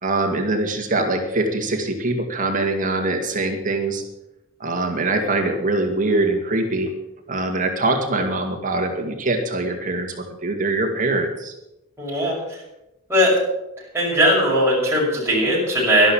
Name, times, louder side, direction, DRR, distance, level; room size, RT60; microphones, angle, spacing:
voice 1, 0.0-4.0 4.6-6.9 7.3-11.5, right 2 dB, 40° right, 3 dB, 2.2 m, -23 dB
voice 2, 12.0-12.4 13.1-13.4 13.9-16.1, equal, 10° right, -7 dB, 6.3 m, -18 dB
12.0 x 11.5 x 7.3 m, 0.92 s
head